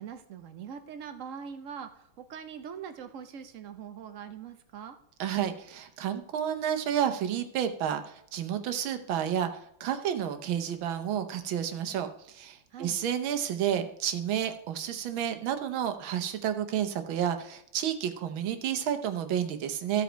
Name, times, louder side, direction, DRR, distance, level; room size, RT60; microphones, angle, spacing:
voice 1, 0.0-5.0 12.7-13.0, right 7 dB, 60° right, 8 dB, 0.8 m, -42 dB
voice 2, 5.2-20.0, right 9 dB, 85° right, 8 dB, 1.7 m, -31 dB
15.0 x 5.0 x 4.5 m, 0.72 s
omnidirectional pair, 2.1 m